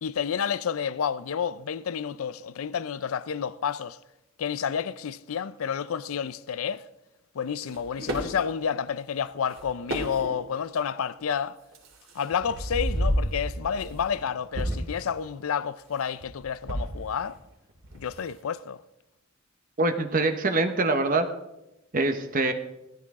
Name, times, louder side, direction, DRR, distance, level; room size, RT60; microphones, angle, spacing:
voice 1, 0.0-4.0 4.4-6.8 7.3-11.6 12.1-17.4 17.9-18.8, left 7 dB, 80° left, 0.4 m, -30 dB
sound 1, 7.7-8.3 9.5-9.6 9.9-10.5 11.2-11.3 11.7-14.2 14.5-15.0 16.2-17.4 17.7-18.1, equal, 75° right, 3.1 m, -31 dB
voice 2, 19.8-21.3 21.9-22.5, right 2 dB, 40° right, 0.9 m, -24 dB
17.5 x 13.5 x 3.6 m
head